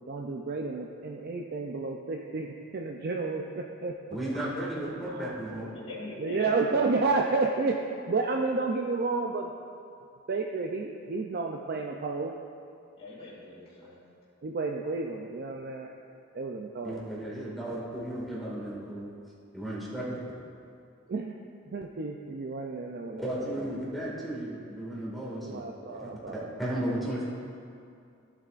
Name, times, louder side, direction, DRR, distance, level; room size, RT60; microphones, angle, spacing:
voice 1, 0.1-3.9 4.3-4.4 5.1-5.3 6.2-7.8 8.1-9.5 10.3-12.3 14.4-16.0 16.3-17.0 20.0-20.2 21.1-21.4 21.7-23.6 25.4-26.5, right 3 dB, 50° right, 1 dB, 0.5 m, -31 dB
voice 2, 4.1-5.7 16.8-19.1 19.5-20.2 23.2-25.6 25.9-27.3, right 1 dB, ahead, -7 dB, 2.0 m, -34 dB
voice 3, 5.5-6.8 13.0-14.0, left 2 dB, 30° left, -12 dB, 2.5 m, -43 dB
15.0 x 8.3 x 2.5 m, 2.5 s
head